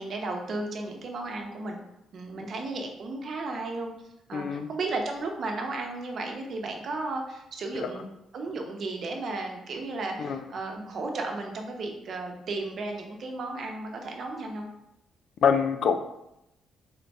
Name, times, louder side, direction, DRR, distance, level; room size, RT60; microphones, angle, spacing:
voice 1, 0.0-1.8 2.1-3.9 4.3-8.1 8.3-14.7, right 3 dB, 55° right, 2 dB, 0.8 m, -34 dB
voice 2, 4.3-4.7 7.8-7.9 10.2-10.4 15.4-16.0, left 7 dB, 70° left, 8 dB, 0.4 m, -24 dB
4.0 x 3.7 x 3.5 m, 0.86 s
cardioid pair, 90°, 0 cm